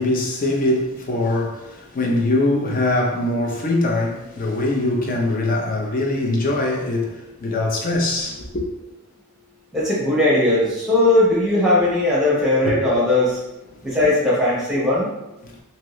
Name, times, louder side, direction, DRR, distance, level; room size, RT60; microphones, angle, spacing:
voice 1, 0.0-8.6 12.6-12.8 15.4-15.5, left 2 dB, 40° left, 0.5 m, -22 dB
voice 2, 9.7-13.4 13.8-15.1, left 1 dB, ahead, 0.9 m, -18 dB
2.7 x 2.7 x 3.0 m
head